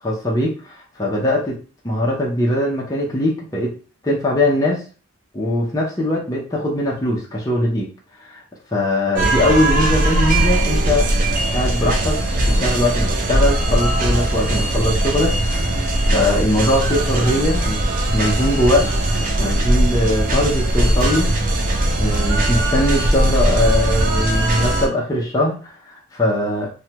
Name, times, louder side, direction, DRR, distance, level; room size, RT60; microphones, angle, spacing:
voice 1, 0.0-1.6 1.8-3.7 4.0-4.8 5.3-7.9 8.2-8.4 8.7-11.1 11.5-12.2 12.5-18.9 19.2-21.7 22.0-26.7, left 1 dB, 15° left, -4 dB, 0.6 m, -21 dB
sound 1, 9.2-24.9, right 1 dB, 35° right, 0.4 m, -19 dB
3.1 x 2.2 x 2.8 m, 0.37 s
head